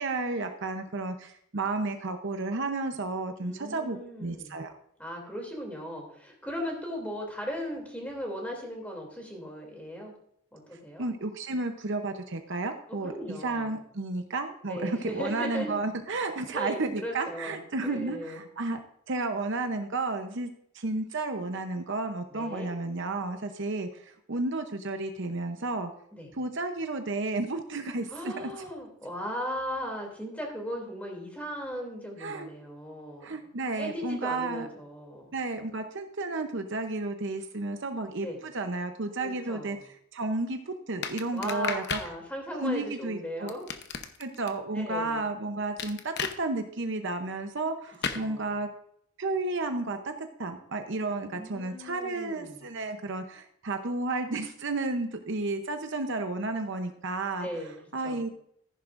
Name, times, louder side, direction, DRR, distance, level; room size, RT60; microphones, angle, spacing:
voice 1, 0.0-4.7 11.0-18.8 19.1-25.9 26.3-28.5 32.2-32.5 33.2-34.7 35.3-42.0 42.6-43.6 44.2-48.7 49.2-50.1 50.4-57.5 57.9-58.3, right 2 dB, 55° right, 6 dB, 0.8 m, -32 dB
voice 2, 3.4-4.5 5.0-10.1 10.5-11.0 12.9-13.7 14.7-15.7 16.5-18.4 22.3-22.7 26.1-26.3 28.1-33.3 33.8-35.3 38.2-38.4 39.2-39.8 41.3-43.7 44.7-45.2 48.1-48.5 51.1-52.7 57.4-57.7 58.0-58.2, equal, 5° left, 1 dB, 2.8 m, -37 dB
sound 1, 41.0-42.1 43.5-44.5 45.8-46.4 48.0-48.2, left 6 dB, 50° left, 0.8 m, -33 dB
14.0 x 11.0 x 2.6 m, 0.68 s
head